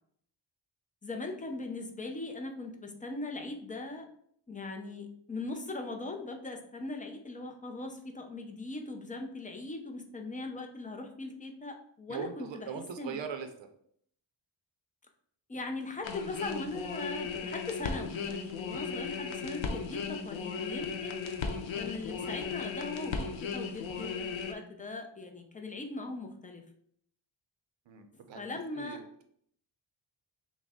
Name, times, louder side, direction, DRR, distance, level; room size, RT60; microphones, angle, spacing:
voice 1, 1.0-4.0 4.5-13.2 15.5-21.2 21.7-26.6 28.1-29.0, left 2 dB, 20° left, 3 dB, 0.5 m, -40 dB
voice 2, 12.1-13.5 27.9-28.4 28.8-29.2, right 7 dB, 75° right, 7 dB, 0.6 m, -40 dB
sound 1, 16.0-24.5, left 5 dB, 85° left, 0.7 m, -36 dB
6.0 x 2.1 x 3.5 m, 0.66 s
wide cardioid pair, 150°, 45 cm